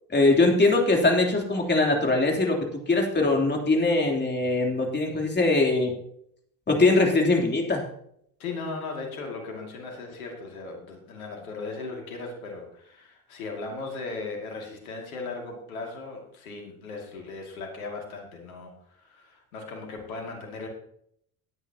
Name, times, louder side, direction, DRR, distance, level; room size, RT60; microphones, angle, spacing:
voice 1, 0.1-5.9 6.7-7.8, left 2 dB, 25° left, 1 dB, 3.4 m, -22 dB
voice 2, 8.4-20.7, left 3 dB, 85° left, 1 dB, 2.5 m, -37 dB
17.5 x 8.9 x 2.9 m, 0.68 s
hypercardioid pair, 65°, 42 cm